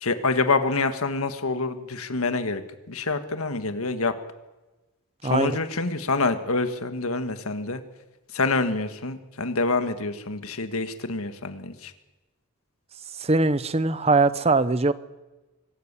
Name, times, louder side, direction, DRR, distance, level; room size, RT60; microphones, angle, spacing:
voice 1, 0.0-2.6 2.9-4.2 5.2-7.8 8.3-11.9, left 3 dB, 80° left, 9 dB, 1.6 m, -26 dB
voice 2, 13.2-14.9, right 3 dB, 30° right, 14 dB, 0.8 m, -21 dB
24.5 x 13.0 x 8.3 m, 1.1 s
head